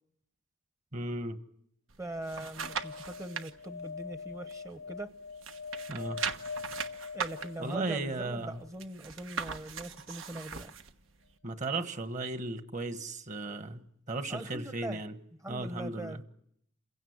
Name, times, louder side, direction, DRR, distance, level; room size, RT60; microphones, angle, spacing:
voice 1, 0.9-1.4 5.9-6.2 7.6-8.6 11.4-15.1 15.5-16.2, right 2 dB, 40° right, 1.4 m, -36 dB
sound 1, 1.9-3.5 4.0-5.1 5.4-10.9 11.4-11.5, right 6 dB, 85° right, 1.3 m, -39 dB
voice 2, 2.0-5.1 7.1-10.7 14.3-15.0 15.4-16.2, right 1 dB, 15° right, 0.9 m, -41 dB
sound 2, 2.5-8.7 11.0-11.1 11.2-11.3, left 5 dB, 80° left, 1.0 m, -43 dB
28.5 x 16.5 x 9.5 m
head